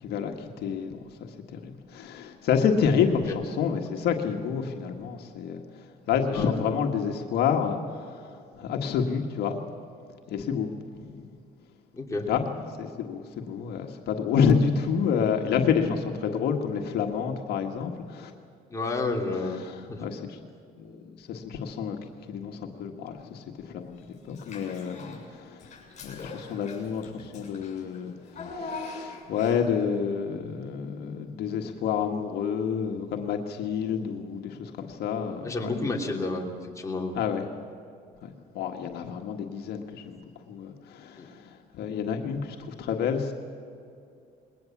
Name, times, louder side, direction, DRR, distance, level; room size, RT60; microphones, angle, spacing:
voice 1, 0.0-9.6 10.3-11.3 12.3-12.5 12.8-18.3 19.6-20.4 20.7-22.0 22.3-25.7 26.0-35.7 37.1-37.4 38.2-40.2 40.5-43.3, left 6 dB, 75° left, 3 dB, 1.7 m, -29 dB
voice 2, 11.9-12.3 18.7-19.6 19.9-20.0 35.4-37.2 41.2-41.3, left 3 dB, 20° left, 0 dB, 3.0 m, -30 dB
Child speech kid speaking / Bathtub (filling or washing), 24.3-25.2 25.6-29.8, left 3 dB, 40° left, 7.3 m, -42 dB
21.5 x 18.5 x 7.3 m, 2.5 s
cardioid pair, 110°, 17 cm